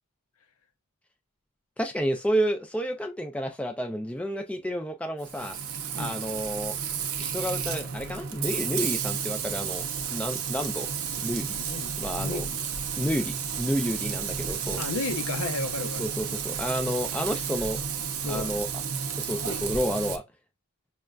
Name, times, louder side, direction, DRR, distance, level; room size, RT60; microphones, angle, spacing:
voice 1, 1.8-5.6 5.9-6.7 7.2-9.8 10.1-10.9 11.2-11.6 12.0-12.4 13.0-14.8 16.0-17.8 18.3-18.7 19.2-20.2, equal, 5° left, 0.3 m, -30 dB
Frying (food), 5.2-20.2, right 7 dB, 70° right, 0.6 m, -32 dB
voice 2, 11.6-12.7 14.8-16.1 18.2-18.6, left 3 dB, 65° left, 0.6 m, -33 dB
6.3 x 2.2 x 2.3 m
head